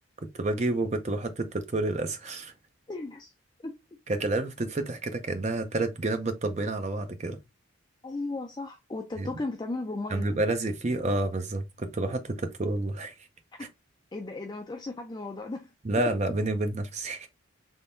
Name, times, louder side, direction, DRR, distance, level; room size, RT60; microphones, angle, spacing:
voice 1, 0.3-2.5 4.1-7.4 9.2-9.3 10.1-13.1 13.6-13.7 15.8-17.3, right 2 dB, 35° right, 0.5 m, -29 dB
voice 2, 2.9-3.3 3.6-3.7 8.0-10.4 13.6-13.7 14.1-15.7, left 2 dB, 20° left, 0.4 m, -35 dB
3.6 x 3.2 x 2.6 m
head